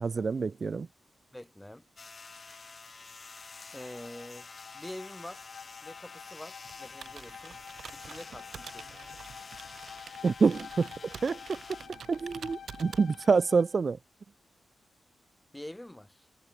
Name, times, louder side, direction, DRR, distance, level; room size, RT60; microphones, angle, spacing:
voice 1, 0.0-0.9 10.2-10.9 11.2-11.6 12.1-14.0, right 5 dB, 40° right, 0.3 m, -27 dB
voice 2, 1.3-1.8 3.7-4.5 4.7-5.5 5.8-7.6 7.9-9.2 15.5-16.3, left 1 dB, 5° left, 0.7 m, -45 dB
sound 1, 2.0-11.9, left 4 dB, 30° left, 1.9 m, -49 dB
Bowed string instrument, 3.3-13.8, left 8 dB, 75° left, 4.8 m, -49 dB
Computer keyboard, 6.6-13.5, right 7 dB, 65° right, 0.7 m, -48 dB
wide cardioid pair, 155°, 0 cm